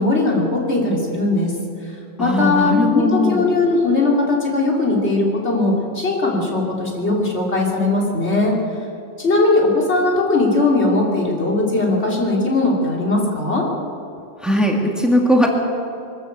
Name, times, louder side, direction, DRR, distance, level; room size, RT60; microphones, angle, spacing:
voice 1, 0.0-1.5 2.2-8.6 9.2-13.7, left 2 dB, 85° left, -1 dB, 3.7 m, -19 dB
voice 2, 2.2-3.5 14.4-15.5, left 1 dB, ahead, 0 dB, 2.3 m, -18 dB
23.5 x 14.0 x 8.2 m, 2.6 s
omnidirectional pair, 1.1 m